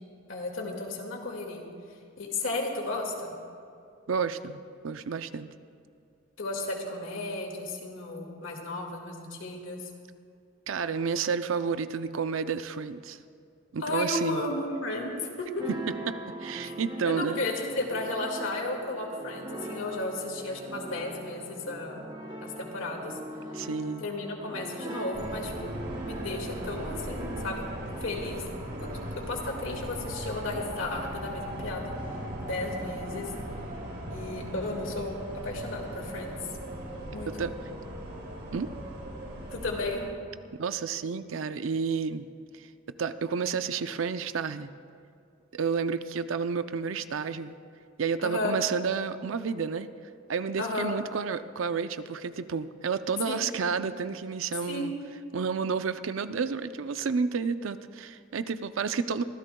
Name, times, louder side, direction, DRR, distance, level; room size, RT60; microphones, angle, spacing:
voice 1, 0.3-1.6 2.2-3.3 6.4-9.9 13.8-15.5 16.6-16.7 17.1-22.1 22.4-23.2 24.0-25.7 26.1-27.6 28.0-28.4 28.8-31.9 32.4-33.3 34.1-35.1 35.4-36.3 37.1-37.3 39.5-40.0 48.2-48.6 50.6-50.9 53.3-53.5 54.7-54.9, left 2 dB, 75° left, 1 dB, 2.1 m, -34 dB
voice 2, 4.1-5.5 10.7-13.2 13.7-14.4 16.1-17.4 23.5-24.1 37.4-37.5 38.5-38.7 40.6-42.3 42.6-42.7 43.0-44.7 45.5-47.5 48.0-49.9 50.3-54.9 55.3-59.2, right 5 dB, 75° right, 11 dB, 0.5 m, -30 dB
sound 1, 15.6-28.2, right 2 dB, 25° right, 1.1 m, -41 dB
sound 2, 25.1-40.0, equal, 55° right, 4.1 m, -38 dB
24.5 x 15.5 x 2.3 m, 2.5 s
head